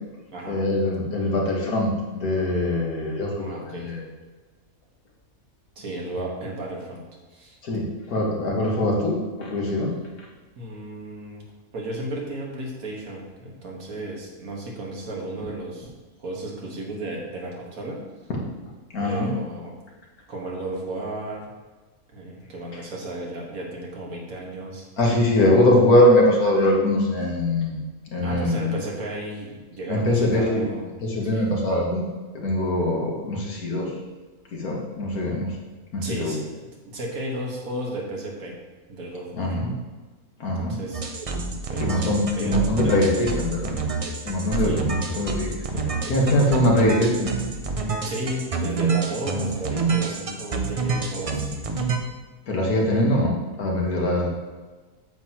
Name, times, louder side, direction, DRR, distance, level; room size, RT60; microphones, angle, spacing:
voice 1, 0.5-4.0 7.6-10.3 18.9-19.3 22.7-22.8 25.0-27.8 28.1-28.7 29.9-30.6 31.0-34.0 34.5-35.6 35.9-36.4 39.3-39.7 40.4-40.8 41.8-43.8 44.3-45.7 46.1-47.3 52.5-54.3, left 1 dB, 90° left, -2 dB, 2.0 m, -22 dB
voice 2, 3.4-4.0 5.8-7.0 7.3-7.6 10.6-11.4 11.7-15.9 16.2-18.0 19.0-19.7 20.3-21.4 22.1-24.9 28.2-30.8 31.3-31.4 36.0-36.5 36.8-38.5 38.9-39.6 40.6-41.0 41.7-42.5 42.8-43.2 44.6-44.8 45.7-46.0 48.0-51.5, right 1 dB, 75° right, -2 dB, 2.0 m, -34 dB
sound 1, 40.9-52.0, right 4 dB, 40° right, 0.5 m, -27 dB
8.7 x 7.6 x 3.0 m, 1.3 s
omnidirectional pair, 1.5 m